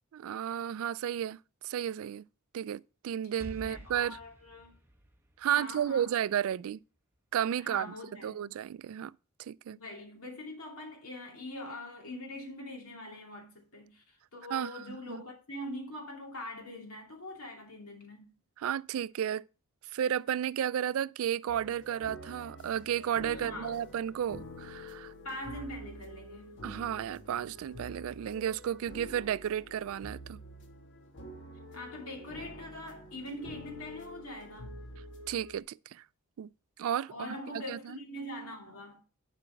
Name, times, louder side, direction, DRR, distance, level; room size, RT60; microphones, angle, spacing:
voice 1, 0.1-1.4 1.6-2.2 2.5-4.2 5.4-6.8 7.3-7.9 8.2-9.1 9.4-9.8 14.5-14.8 15.1-15.2 18.6-19.5 19.9-25.1 26.6-30.4 35.3-36.0 36.4-36.5 36.8-38.0, right 9 dB, 65° right, 0.3 m, -33 dB
Explosion, 3.4-7.2, right 1 dB, 10° right, 1.1 m, -51 dB
voice 2, 3.6-4.7 5.6-6.1 7.6-8.5 9.7-18.3 23.3-23.8 25.2-26.6 31.7-34.8 37.1-39.1, left 1 dB, 75° left, 2.7 m, -43 dB
sound 1, 21.5-35.6, left 1 dB, 55° left, 1.4 m, -48 dB
11.0 x 5.1 x 4.5 m
head